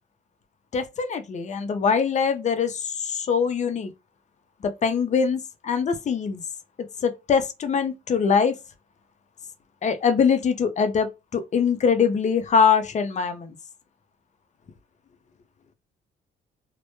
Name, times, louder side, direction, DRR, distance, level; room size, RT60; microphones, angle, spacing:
voice 1, 0.7-3.9 4.6-6.4 7.0-8.6 9.8-13.6, left 6 dB, 35° left, 0.5 m, -23 dB
2.1 x 2.1 x 2.9 m
cardioid pair, 90°, 20 cm